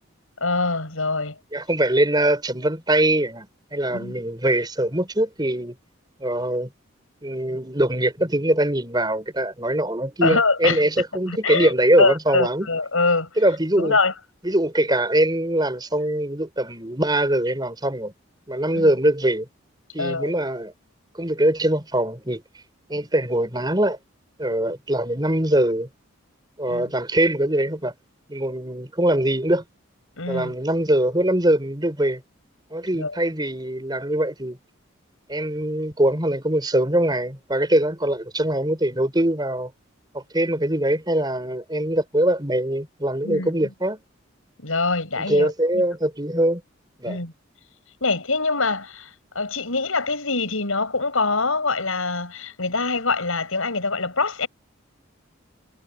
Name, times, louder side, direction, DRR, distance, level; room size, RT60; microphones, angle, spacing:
voice 1, 0.4-1.4 3.9-4.1 10.2-10.8 11.3-11.7 12.0-13.3 13.8-14.1 18.7-18.9 20.0-20.3 26.7-26.9 30.2-30.5 32.9-33.2 43.2-43.5 44.6-45.8 47.0-47.3 48.0-54.5, left 3 dB, 85° left, 6.8 m, -24 dB
voice 2, 1.5-5.7 6.2-6.7 7.2-12.7 13.4-14.0 14.4-18.1 18.5-19.5 19.9-20.7 21.1-22.4 22.9-24.0 24.4-25.9 26.6-27.9 28.3-29.6 30.3-32.2 32.7-34.6 35.3-39.7 40.1-44.0 45.2-46.6 47.0-47.2, right 1 dB, 20° right, 4.5 m, -22 dB
head